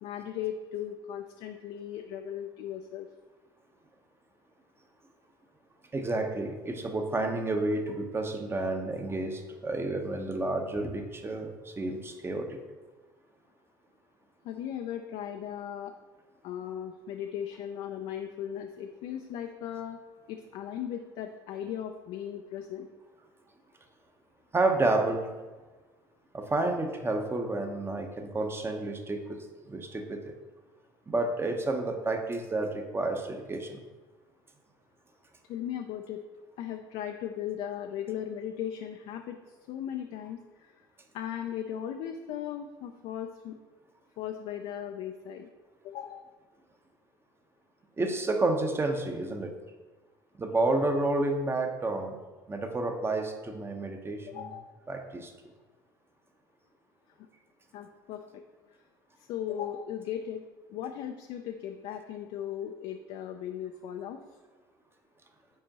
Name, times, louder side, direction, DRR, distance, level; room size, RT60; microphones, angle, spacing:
voice 1, 0.0-3.1 14.4-16.0 16.4-20.0 20.3-22.9 35.5-36.2 36.6-40.7 41.1-43.6 44.2-45.5 45.8-46.3 54.3-54.7 57.7-58.4 59.2-60.4 60.7-64.2, left 10 dB, 60° left, 5 dB, 0.4 m, -37 dB
voice 2, 5.9-12.6 24.5-25.3 26.3-30.3 31.1-33.8 48.0-49.5 50.4-52.2 52.5-54.5 54.9-55.3, right 2 dB, 20° right, 5 dB, 0.8 m, -30 dB
7.6 x 4.4 x 2.9 m, 1.3 s
hypercardioid pair, 65°, 11 cm